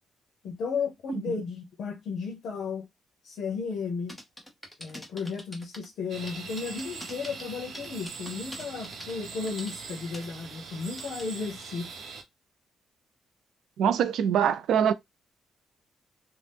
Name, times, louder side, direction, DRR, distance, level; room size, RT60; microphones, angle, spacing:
voice 1, 0.4-2.9 3.2-4.2 4.8-11.9, left 5 dB, 80° left, 0.7 m, -34 dB
Computer Keyboard, 4.1-5.9 6.3-9.7 10.1-10.3 11.0-11.2, equal, 5° left, 0.8 m, -43 dB
sound 1, 6.1-12.2, right 5 dB, 65° right, 0.7 m, -42 dB
voice 2, 13.8-14.9, right 8 dB, 85° right, 0.3 m, -23 dB
2.8 x 2.0 x 3.4 m
cardioid pair, 155°, 0 cm